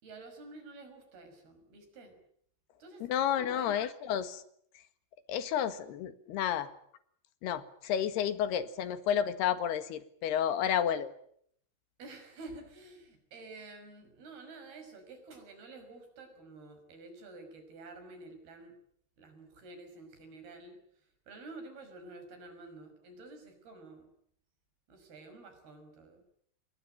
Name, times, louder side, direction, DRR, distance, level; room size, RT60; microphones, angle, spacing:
voice 1, 0.0-2.2 2.8-3.8 12.0-18.8 19.2-20.8 21.3-24.1 24.9-26.2, right 3 dB, 70° right, 7 dB, 7.6 m, -50 dB
voice 2, 3.1-4.4 5.3-6.7 7.4-11.1, left 9 dB, 80° left, 12 dB, 3.7 m, -31 dB
28.0 x 21.0 x 9.1 m, 0.68 s
omnidirectional pair, 4.6 m